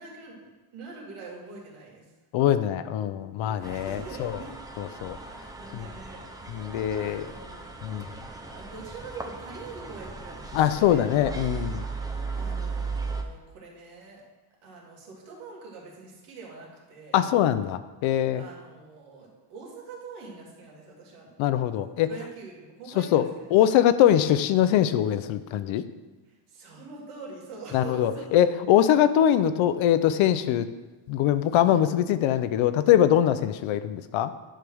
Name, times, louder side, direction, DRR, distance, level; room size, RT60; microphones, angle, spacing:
voice 1, 0.0-2.1 3.3-4.5 5.1-6.3 6.9-7.7 8.0-8.2 8.5-11.3 12.3-14.2 14.6-17.2 18.3-21.3 22.0-23.5 26.2-28.3 31.6-31.8, right 4 dB, 90° right, -2 dB, 2.6 m, -44 dB
voice 2, 2.3-4.4 4.8-5.2 5.7-5.9 6.5-7.3 7.8-8.1 10.5-11.8 17.1-18.4 21.4-22.1 23.1-23.2 23.5-25.8 27.7-30.7 31.1-34.3, left 11 dB, 70° left, 13 dB, 0.7 m, -22 dB
sound 1, 3.6-13.2, right 4 dB, 10° right, 0.3 m, -37 dB
10.0 x 3.4 x 6.2 m, 1.2 s
cardioid pair, 150°, 50 cm